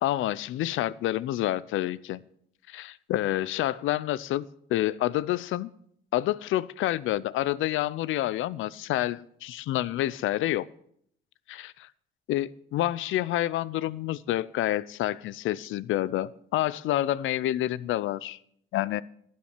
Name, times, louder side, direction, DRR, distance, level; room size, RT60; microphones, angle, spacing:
voice 1, 0.0-2.2 2.7-4.4 4.7-5.7 6.1-10.7 11.5-11.7 12.3-18.4 18.7-19.0, left 14 dB, 80° left, 20 dB, 0.5 m, -28 dB
12.5 x 7.5 x 7.2 m, 0.68 s
cardioid pair, 90°, 20 cm